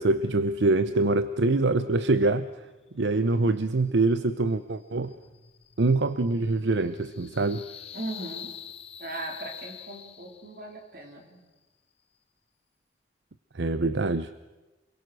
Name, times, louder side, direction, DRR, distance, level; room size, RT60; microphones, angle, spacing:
voice 1, 0.0-2.5 3.0-5.1 5.8-7.6 13.5-14.3, right 2 dB, 70° right, 13 dB, 0.7 m, -24 dB
sound 1, 4.7-10.7, left 8 dB, 30° left, 1.1 m, -45 dB
voice 2, 7.9-8.5 9.0-11.4, right 2 dB, 50° right, 3 dB, 4.1 m, -39 dB
28.5 x 22.0 x 6.3 m, 1.2 s
head